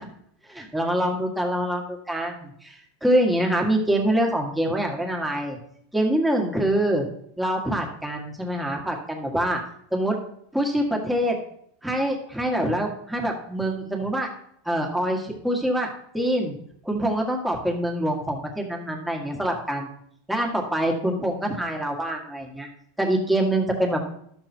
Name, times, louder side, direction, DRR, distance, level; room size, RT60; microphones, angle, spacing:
voice 1, 0.5-5.6 5.9-7.0 7.4-9.6 9.9-10.2 10.5-11.4 11.8-14.3 14.7-15.9 16.1-16.5 16.8-20.0 20.3-22.7 23.0-24.0, right 1 dB, 5° right, 1 dB, 1.9 m, -25 dB
12.0 x 6.8 x 4.5 m, 0.68 s
supercardioid pair, 150°, 0 cm